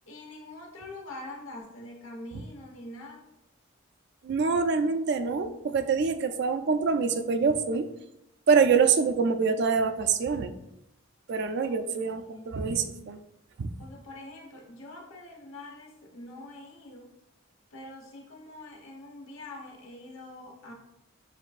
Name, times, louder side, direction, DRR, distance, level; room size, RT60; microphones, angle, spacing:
voice 1, 0.1-3.3 11.6-11.8 12.0-13.3 13.8-17.1 17.7-20.7, left 2 dB, 80° left, 0 dB, 1.1 m, -45 dB
voice 2, 4.2-7.9 8.5-10.5 11.3-13.2 13.6-13.7, right 5 dB, 55° right, 8 dB, 0.3 m, -25 dB
7.5 x 2.6 x 2.4 m, 0.85 s
head